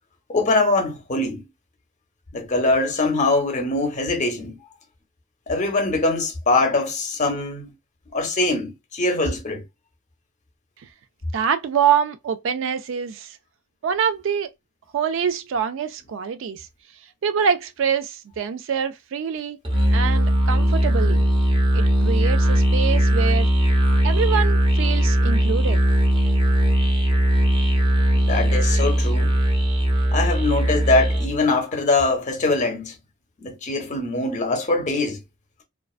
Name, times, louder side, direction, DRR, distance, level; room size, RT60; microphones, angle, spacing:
voice 1, 0.3-1.4 2.3-4.6 5.5-7.7 8.1-9.6 28.2-29.4 30.1-33.0 33.4-35.2, left 2 dB, 40° left, 0.6 m, -22 dB
voice 2, 11.3-13.4 13.8-14.5 14.9-16.7 17.2-19.6 19.9-21.3 21.7-23.5 24.0-25.8, right 7 dB, 65° right, 0.3 m, -25 dB
Musical instrument, 19.6-31.4, right 1 dB, 25° right, 0.6 m, -19 dB
2.4 x 2.2 x 2.3 m
head